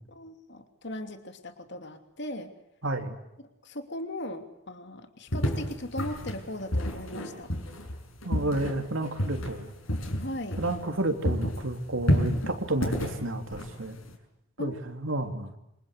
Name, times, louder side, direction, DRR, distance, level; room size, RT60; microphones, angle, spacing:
voice 1, 0.1-2.5 3.6-7.5 10.2-10.6 14.6-14.8, left 1 dB, 55° left, 6 dB, 3.0 m, -38 dB
voice 2, 2.8-3.2 8.2-9.7 10.6-14.0 14.6-15.5, right 2 dB, 65° right, 6 dB, 3.4 m, -31 dB
sound 1, 5.3-11.0 11.2-14.1, equal, 75° left, 6.8 m, -30 dB
27.0 x 26.5 x 8.3 m, 0.83 s
head